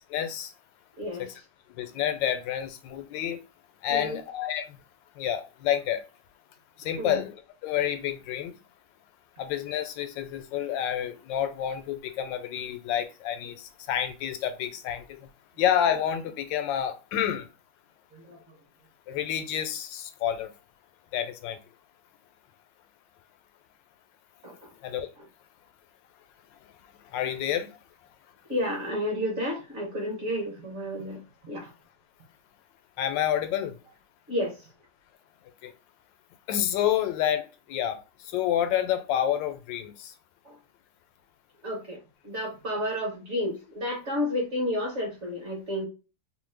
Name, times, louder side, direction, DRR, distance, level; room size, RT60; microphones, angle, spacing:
voice 1, 0.1-0.5 1.2-1.3 1.8-3.4 3.8-4.8 5.2-6.0 6.8-7.3 7.6-8.5 9.4-15.2 15.6-17.4 19.1-20.5 21.1-21.6 24.8-25.1 27.1-27.7 33.0-33.7 35.6-35.7 36.5-38.0 38.3-40.1, left 10 dB, 90° left, 1.3 m, -29 dB
voice 2, 1.0-1.4 3.9-4.2 7.0-7.2 18.1-18.6 24.4-24.7 25.2-25.3 28.5-31.7 34.3-34.7 40.4-40.6 41.6-45.8, left 1 dB, 50° right, 1.0 m, -31 dB
3.0 x 2.1 x 3.3 m
omnidirectional pair, 1.9 m